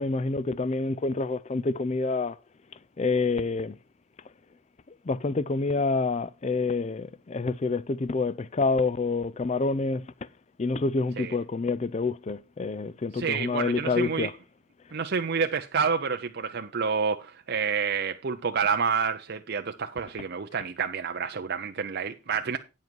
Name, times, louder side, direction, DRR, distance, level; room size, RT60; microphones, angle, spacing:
voice 1, 0.0-2.3 3.0-3.7 5.1-10.0 10.6-14.3, left 3 dB, 30° left, 0.4 m, -27 dB
voice 2, 13.1-14.3 14.9-22.6, right 6 dB, 45° right, 0.5 m, -28 dB
9.4 x 7.3 x 4.5 m
head